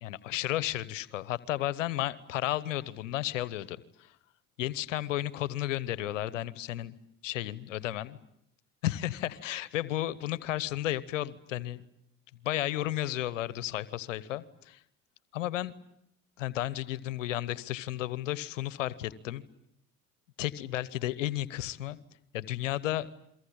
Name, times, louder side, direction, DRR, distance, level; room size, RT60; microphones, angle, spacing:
voice 1, 0.0-4.1 4.6-6.9 7.2-8.2 8.8-11.8 12.4-14.8 15.3-15.7 16.4-19.4 20.4-22.0 22.3-23.1, left 14 dB, 90° left, 18 dB, 1.0 m, -33 dB
29.0 x 23.5 x 8.7 m, 0.75 s
hypercardioid pair, 60°, 37 cm